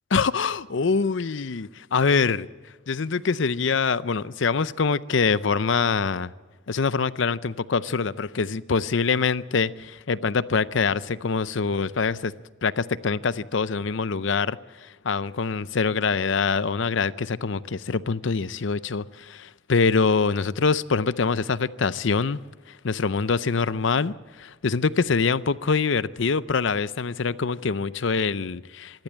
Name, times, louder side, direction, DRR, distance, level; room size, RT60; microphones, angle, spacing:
voice 1, 0.1-2.5 2.9-6.3 6.7-12.3 12.6-22.4 22.7-29.0, left 5 dB, 65° left, 17 dB, 0.6 m, -24 dB
25.5 x 12.0 x 8.6 m, 1.3 s
head